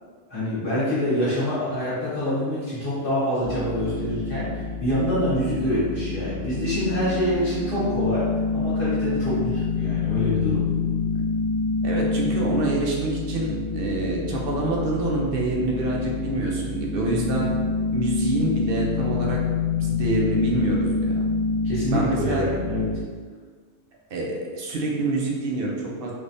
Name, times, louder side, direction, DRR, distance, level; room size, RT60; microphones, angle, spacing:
voice 1, 0.3-4.5 4.8-8.2 8.5-10.6 21.6-22.9, left 1 dB, 55° left, -10 dB, 1.4 m, -26 dB
sound 1, 3.4-23.0, left 4 dB, 85° left, 0.9 m, -27 dB
voice 2, 11.8-17.5 17.9-19.4 19.7-21.2 21.9-22.5 24.1-26.1, right 2 dB, 65° right, -2 dB, 0.8 m, -26 dB
3.3 x 3.1 x 2.6 m, 1.5 s
omnidirectional pair, 1.1 m